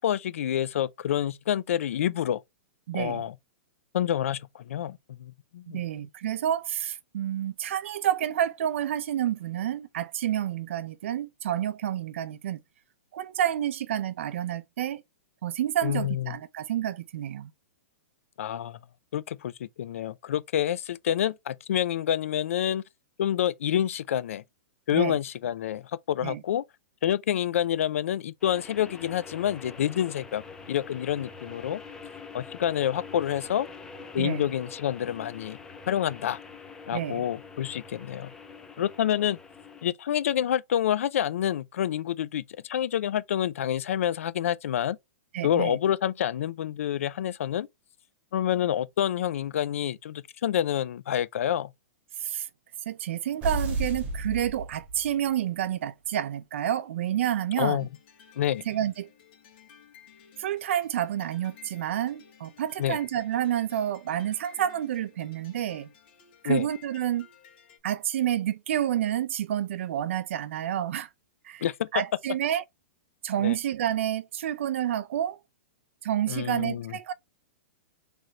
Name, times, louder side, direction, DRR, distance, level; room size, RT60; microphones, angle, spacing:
voice 1, 0.0-2.4 2.9-3.4 3.9-5.8 15.8-16.4 18.4-18.8 19.1-22.8 23.2-24.4 24.9-26.6 27.0-31.8 32.3-33.7 34.1-35.6 35.9-36.4 36.9-38.3 38.8-39.4 39.8-45.0 45.4-47.7 48.3-51.7 57.6-57.9 58.4-58.6 62.8-63.0 66.4-66.7 71.6-71.9 73.4-73.6 76.3-77.0, left 10 dB, 70° left, 0.5 m, -28 dB
voice 2, 2.9-3.2 5.7-12.6 13.1-15.0 15.4-17.5 24.9-25.2 26.2-26.4 34.2-34.5 36.9-37.2 45.3-45.8 52.2-52.5 52.9-57.9 58.7-59.1 60.4-65.9 66.4-67.3 67.8-71.1 71.4-71.6 71.9-72.6 73.2-75.4 76.0-77.1, right 11 dB, 60° right, 0.5 m, -29 dB
sound 1, 28.4-39.9, left 4 dB, 10° left, 0.5 m, -45 dB
sound 2, 53.4-55.3, right 2 dB, 20° right, 1.4 m, -32 dB
sound 3, 57.8-67.8, left 9 dB, 40° left, 1.3 m, -55 dB
3.9 x 3.3 x 3.2 m
hypercardioid pair, 165°, 8 cm